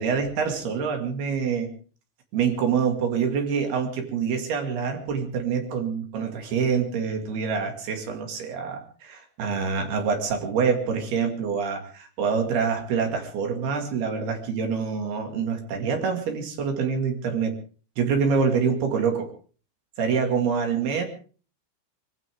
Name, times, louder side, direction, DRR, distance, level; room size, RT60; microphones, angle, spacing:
voice 1, 0.0-1.7 2.3-17.6 18.0-19.3 20.0-21.1, right 6 dB, 55° right, 4 dB, 3.8 m, -26 dB
24.0 x 16.0 x 3.6 m, 0.40 s
omnidirectional pair, 6.0 m